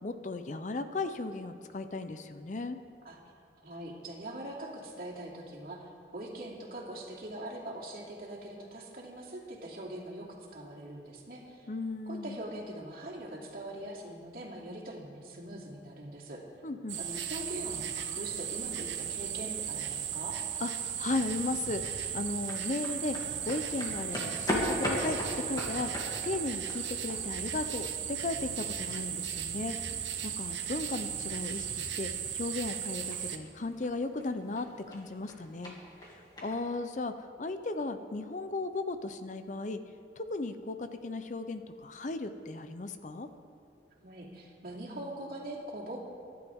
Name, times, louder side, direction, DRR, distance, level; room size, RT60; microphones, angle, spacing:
voice 1, 0.0-2.8 11.7-12.4 16.6-17.0 20.6-23.2 23.4-25.2 25.5-25.9 26.2-29.7 30.2-35.7 36.1-39.8 40.2-43.3, left 3 dB, 45° left, 9 dB, 0.6 m, -36 dB
voice 2, 3.6-11.7 12.1-16.4 17.0-20.4 44.0-46.0, right 1 dB, 55° right, -4 dB, 2.7 m, -42 dB
sound 1, 16.9-33.4, right 9 dB, 85° right, 1.0 m, -36 dB
sound 2, 21.4-36.6, left 1 dB, 20° left, 2.4 m, -41 dB
24.5 x 11.0 x 3.6 m, 2.5 s
head